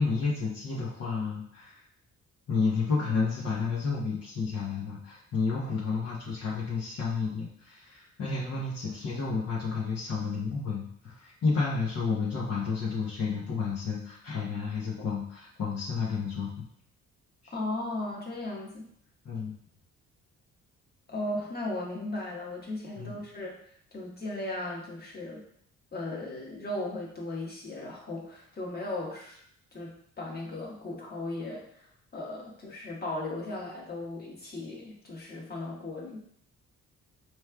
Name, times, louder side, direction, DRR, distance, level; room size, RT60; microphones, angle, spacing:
voice 1, 0.0-1.8 2.5-16.6 17.4-17.5 19.2-19.5 23.0-23.2, left 4 dB, 55° left, -5 dB, 1.0 m, -31 dB
voice 2, 17.5-18.8 21.1-23.5 23.9-25.4 25.9-29.4 29.7-36.2, left 2 dB, 30° left, -2 dB, 1.3 m, -36 dB
4.7 x 3.1 x 2.3 m, 0.66 s
cardioid pair, 90°, 30 cm